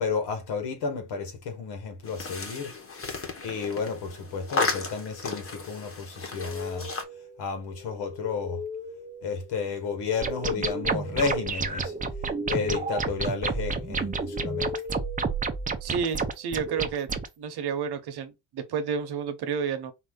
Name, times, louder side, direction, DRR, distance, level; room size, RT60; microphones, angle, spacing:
voice 1, 0.0-2.7 3.4-6.9 7.4-8.6 9.2-11.9 12.5-14.7, left 5 dB, 80° left, 1.7 m, -32 dB
sound 1, 2.0-7.0, left 3 dB, 35° left, 1.2 m, -34 dB
sound 2, 6.4-16.0, left 5 dB, 10° left, 0.8 m, -39 dB
sound 3, 10.2-17.3, right 5 dB, 20° right, 0.6 m, -30 dB
voice 2, 15.8-17.1 17.4-19.9, right 6 dB, 75° right, 1.0 m, -30 dB
4.4 x 2.8 x 3.8 m
cardioid pair, 130°, 40 cm